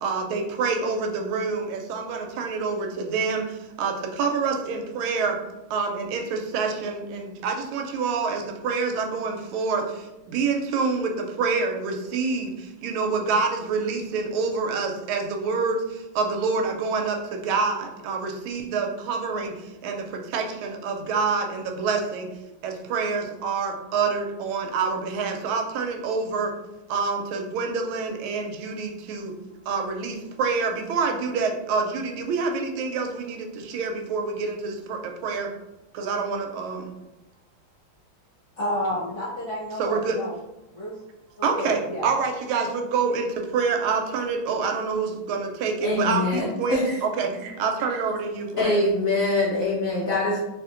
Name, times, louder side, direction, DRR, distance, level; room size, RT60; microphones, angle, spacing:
voice 1, 0.0-5.4 5.7-22.3 22.6-26.5 26.9-29.3 29.7-35.5 35.9-36.9 39.8-40.2 41.4-48.9, right 4 dB, 90° right, 3 dB, 1.4 m, -27 dB
voice 2, 38.6-40.3 40.7-41.0 41.5-42.1, equal, 50° left, -8 dB, 1.0 m, -30 dB
voice 3, 45.8-47.0 48.6-50.4, left 2 dB, 80° left, -4 dB, 0.7 m, -24 dB
3.3 x 2.9 x 2.5 m, 0.95 s
omnidirectional pair, 2.2 m